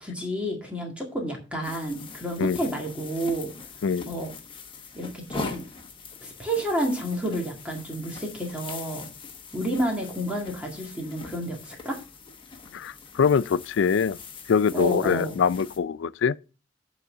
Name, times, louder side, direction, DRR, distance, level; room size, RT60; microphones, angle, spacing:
voice 1, 0.0-3.5 4.1-4.3 5.0-5.6 6.2-9.1 9.5-12.0 14.7-15.4, right 1 dB, 5° right, 1.9 m, -30 dB
sound 1, 1.6-15.8, left 4 dB, 25° left, 1.1 m, -42 dB
voice 2, 3.8-4.1 12.7-14.2 14.5-16.4, left 6 dB, 75° left, 0.4 m, -23 dB
9.3 x 4.1 x 6.4 m
head